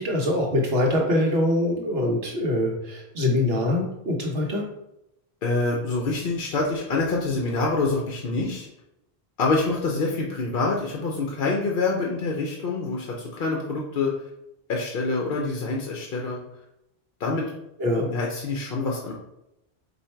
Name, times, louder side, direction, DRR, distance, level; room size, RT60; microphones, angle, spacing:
voice 1, 0.0-4.6 17.8-18.1, left 1 dB, 70° right, -1 dB, 1.2 m, -24 dB
voice 2, 5.4-8.7 9.4-14.1 14.7-16.4 17.2-17.5 18.0-19.1, left 3 dB, 60° left, -1 dB, 0.8 m, -26 dB
4.2 x 2.8 x 4.4 m, 0.84 s
omnidirectional pair, 1.1 m